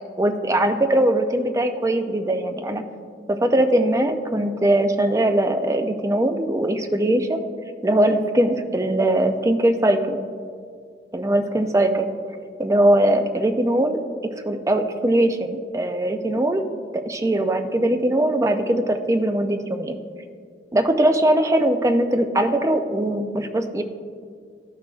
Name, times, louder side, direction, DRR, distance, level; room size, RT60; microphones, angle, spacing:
voice 1, 0.2-2.8 3.3-7.4 7.8-10.2 11.1-12.1 12.6-14.0 14.5-16.6 17.1-20.0 20.7-23.8, right 1 dB, 15° right, 6 dB, 0.4 m, -20 dB
13.5 x 6.0 x 2.4 m, 2.1 s
head